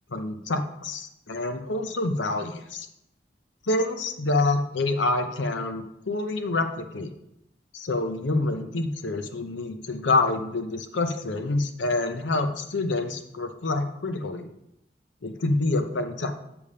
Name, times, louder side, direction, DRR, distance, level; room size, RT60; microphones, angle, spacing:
voice 1, 0.1-2.9 3.6-7.1 7.7-14.5 15.2-16.3, left 2 dB, 85° left, 8 dB, 0.7 m, -27 dB
6.9 x 5.0 x 5.5 m, 0.81 s
head